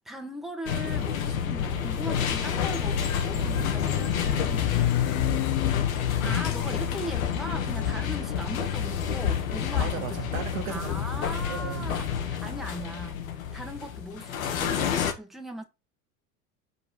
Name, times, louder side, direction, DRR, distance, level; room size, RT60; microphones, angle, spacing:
voice 1, 0.0-5.1 6.0-10.3 10.7-13.2 13.5-15.6, right 1 dB, ahead, 1.7 m, -39 dB
sound 1, 0.7-15.1, left 8 dB, 80° left, 1.8 m, -29 dB
Motorcycle, 1.6-9.8, left 13 dB, 60° left, 1.1 m, -32 dB
voice 2, 5.1-5.4 6.2-6.4 9.8-11.9, right 8 dB, 75° right, 2.3 m, -37 dB
5.8 x 5.0 x 4.6 m
hypercardioid pair, 90°, 41 cm